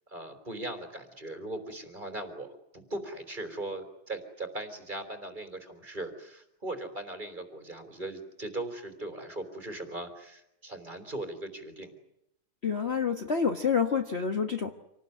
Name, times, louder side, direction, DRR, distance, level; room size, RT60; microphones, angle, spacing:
voice 1, 0.1-11.9, right 2 dB, 25° right, 8 dB, 3.7 m, -39 dB
voice 2, 12.6-14.8, left 6 dB, 35° left, 4 dB, 1.5 m, -28 dB
27.5 x 19.0 x 9.6 m, 0.82 s
omnidirectional pair, 2.2 m